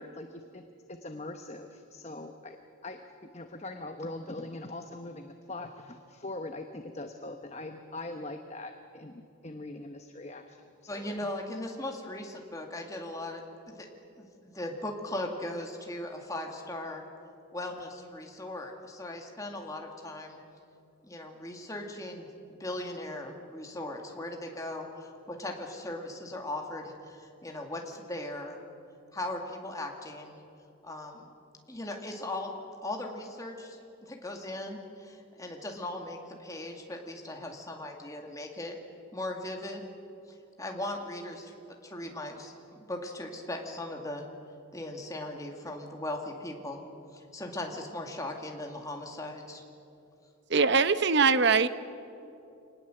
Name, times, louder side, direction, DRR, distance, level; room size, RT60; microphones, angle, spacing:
voice 1, 0.0-2.6 2.8-3.0 3.3-11.3, left 2 dB, 30° left, 6 dB, 1.0 m, -42 dB
voice 2, 10.9-13.9 14.2-17.1 17.5-20.4 21.0-22.3 22.6-28.6 29.1-30.4 30.8-31.3 31.7-32.5 32.8-38.8 39.1-39.9 40.6-44.2 44.7-46.8 47.1-49.6, left 1 dB, 15° left, 2 dB, 2.2 m, -38 dB
voice 3, 50.5-51.7, right 4 dB, 55° right, 12 dB, 0.9 m, -22 dB
26.0 x 19.5 x 7.9 m, 2.6 s
head